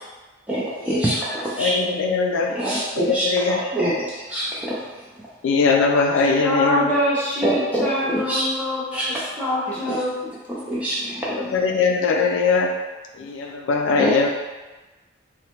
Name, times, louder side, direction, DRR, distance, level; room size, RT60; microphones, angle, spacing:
voice 1, 0.5-1.7 2.5-4.8 7.4-8.4 8.9-9.1 9.9-10.0 10.5-11.5 14.0-14.3, right 1 dB, 5° right, -7 dB, 0.3 m, -25 dB
voice 2, 1.6-2.5 3.0-3.6 5.4-6.9 11.5-12.7 13.2-14.3, left 4 dB, 80° left, 2 dB, 0.3 m, -20 dB
voice 3, 6.4-10.3, equal, 10° left, -9 dB, 0.7 m, -25 dB
2.9 x 2.1 x 2.9 m, 1.2 s
head